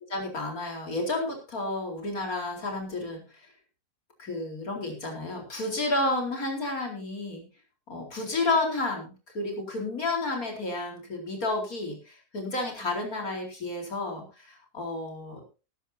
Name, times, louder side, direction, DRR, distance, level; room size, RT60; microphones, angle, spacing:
voice 1, 0.1-3.2 4.2-7.5 7.9-15.4, left 2 dB, 65° left, 1 dB, 4.8 m, -31 dB
18.5 x 13.0 x 2.8 m, 0.31 s
omnidirectional pair, 1.7 m